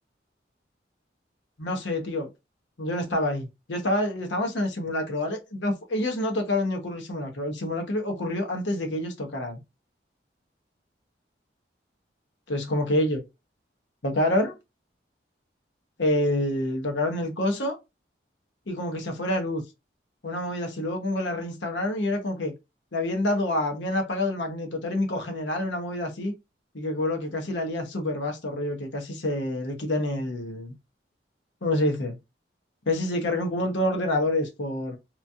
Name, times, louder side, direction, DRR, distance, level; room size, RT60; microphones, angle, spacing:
voice 1, 1.6-2.3 2.8-9.6 12.5-13.2 14.0-14.5 16.0-17.8 18.7-19.6 20.2-22.5 22.9-26.3 26.7-30.8 31.6-32.2 32.9-35.0, left 1 dB, 75° left, 0.9 m, -27 dB
3.0 x 2.6 x 2.4 m
head